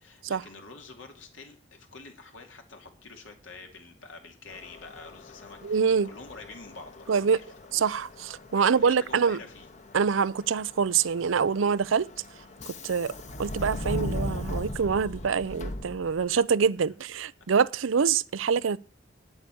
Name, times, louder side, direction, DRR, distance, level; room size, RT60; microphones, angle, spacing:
voice 1, 0.0-7.5 8.5-9.7, left 3 dB, 75° left, 2.5 m, -47 dB
Subway metro underground, 4.5-16.4, left 1 dB, 40° left, 1.1 m, -39 dB
voice 2, 5.6-6.1 7.1-7.4 7.7-9.4 9.9-12.1 12.8-13.1 13.4-18.8, right 6 dB, 90° right, 0.5 m, -25 dB
9.5 x 8.1 x 8.5 m
head